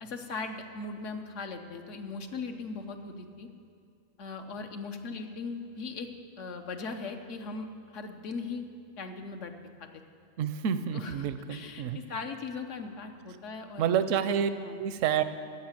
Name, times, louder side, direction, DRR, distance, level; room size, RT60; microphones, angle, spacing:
voice 1, 0.0-3.5 4.2-6.1 6.4-7.7 7.9-8.6 9.0-9.5 9.8-9.9 10.9-14.1 14.6-14.8, left 4 dB, 70° left, 5 dB, 1.2 m, -39 dB
voice 2, 10.4-12.0 13.8-14.5 14.8-15.2, right 8 dB, 80° right, 12 dB, 1.0 m, -28 dB
14.0 x 5.6 x 8.9 m, 2.4 s
omnidirectional pair, 1.3 m